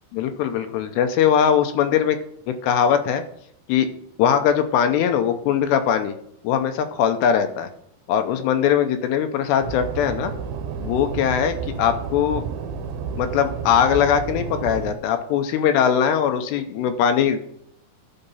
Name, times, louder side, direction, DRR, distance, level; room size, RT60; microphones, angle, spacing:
voice 1, 0.1-2.2 2.5-3.2 3.7-3.9 4.2-6.1 6.4-7.7 8.1-10.3 10.8-12.5 13.2-17.4, left 8 dB, 85° left, 8 dB, 2.9 m, -20 dB
sound 1, 9.6-14.9, right 6 dB, 75° right, 2.4 m, -31 dB
12.0 x 5.0 x 5.6 m, 0.71 s
omnidirectional pair, 4.8 m